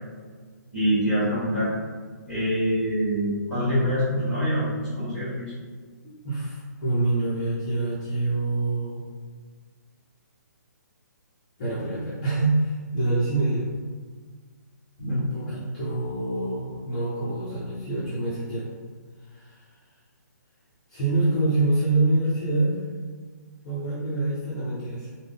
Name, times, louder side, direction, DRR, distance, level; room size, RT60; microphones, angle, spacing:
voice 1, 0.7-1.7 2.3-5.5 15.0-15.6, equal, 5° right, -11 dB, 1.4 m, -25 dB
voice 2, 6.0-9.0 11.6-13.7 15.1-18.7 19.2-19.7 20.9-22.8 23.6-25.1, right 2 dB, 25° left, -10 dB, 0.5 m, -26 dB
3.6 x 2.1 x 3.5 m, 1.5 s
hypercardioid pair, 175°, 10 cm